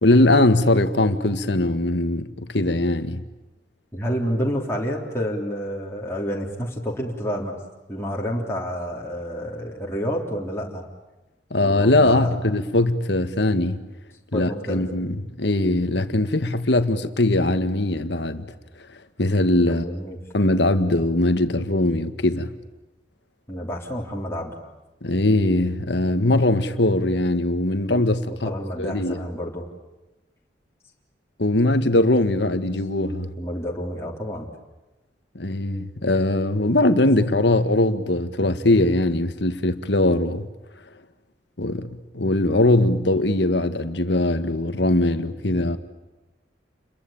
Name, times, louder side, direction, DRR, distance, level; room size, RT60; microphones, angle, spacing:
voice 1, 0.0-3.2 11.5-13.9 14.3-18.5 19.2-19.8 20.3-22.5 25.0-28.5 28.8-29.2 31.4-33.3 35.4-40.5 41.6-45.8, left 1 dB, 65° left, 1.8 m, -21 dB
voice 2, 3.9-7.6 7.9-10.8 11.6-12.3 14.3-14.8 19.7-20.2 23.5-24.6 28.4-29.6 33.4-34.5, equal, 15° left, 3.6 m, -29 dB
30.0 x 23.0 x 8.8 m
head